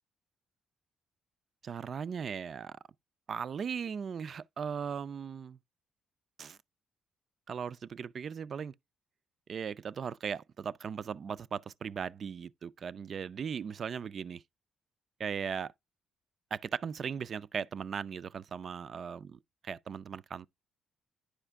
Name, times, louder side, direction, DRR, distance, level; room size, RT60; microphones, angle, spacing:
voice 1, 1.6-2.8 3.3-5.6 6.4-6.6 7.5-8.7 9.5-14.4 15.2-15.7 16.5-19.3 19.7-20.5, right 7 dB, 50° right, 0.3 m, -38 dB
10.0 x 4.9 x 3.4 m
cardioid pair, 90°, 0 cm